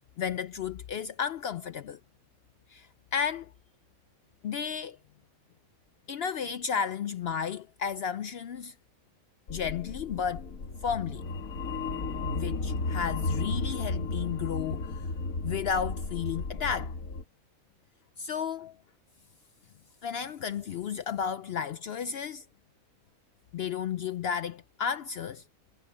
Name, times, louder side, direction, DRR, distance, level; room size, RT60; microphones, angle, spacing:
voice 1, 0.2-2.0 2.7-3.5 4.4-5.0 6.1-8.7 9.5-10.4 10.8-11.2 12.3-15.0 15.4-16.9 18.2-18.8 20.0-22.4 23.5-25.4, left 7 dB, 65° left, 0.6 m, -33 dB
sound 1, 9.5-17.2, left 3 dB, 85° left, 2.4 m, -34 dB
omnidirectional pair, 1.4 m